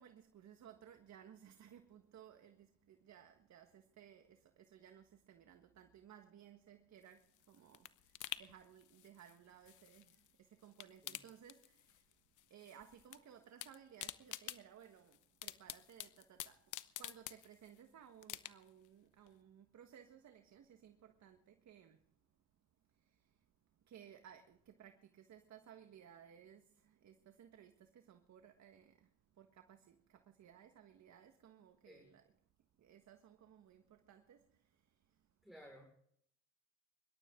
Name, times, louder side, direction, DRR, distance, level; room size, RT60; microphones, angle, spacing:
voice 1, 0.0-22.4 22.8-32.3 32.7-35.4, right 9 dB, 65° right, 1.6 m, -60 dB
sound 1, 7.0-10.3 10.6-12.1 12.4-13.2 13.4-17.8 18.2-18.9 19.3-19.4, left 14 dB, 80° left, 1.0 m, -49 dB
voice 2, 35.4-35.9, equal, ahead, 5.2 m, -57 dB
25.0 x 12.5 x 3.8 m
cardioid pair, 90°, 30 cm